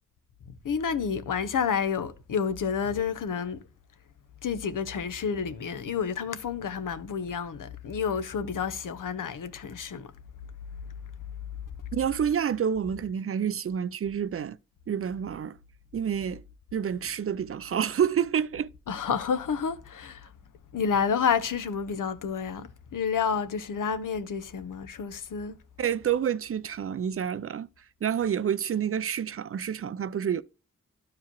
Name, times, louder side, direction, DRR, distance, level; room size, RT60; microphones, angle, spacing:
voice 1, 0.6-3.6 4.4-10.1 18.9-20.3 20.7-25.5, left 6 dB, 85° left, 0.8 m, -29 dB
voice 2, 11.9-14.6 14.9-15.6 15.9-16.4 16.7-18.7 25.8-27.7 28.0-30.4, right 8 dB, 45° right, 0.4 m, -28 dB
12.0 x 4.8 x 2.9 m
cardioid pair, 50°, 31 cm